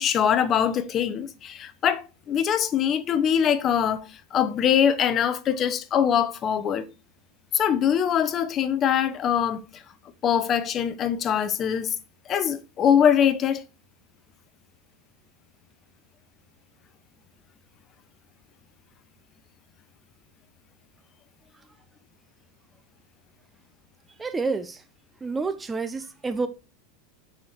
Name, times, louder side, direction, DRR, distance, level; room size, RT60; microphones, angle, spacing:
voice 1, 0.0-6.9 7.5-9.8 10.2-12.0 12.3-13.6, left 8 dB, 30° left, 0.6 m, -23 dB
voice 2, 24.2-24.8 25.2-26.5, right 4 dB, 15° right, 0.5 m, -29 dB
6.2 x 4.3 x 4.3 m
supercardioid pair, 135°, 0 cm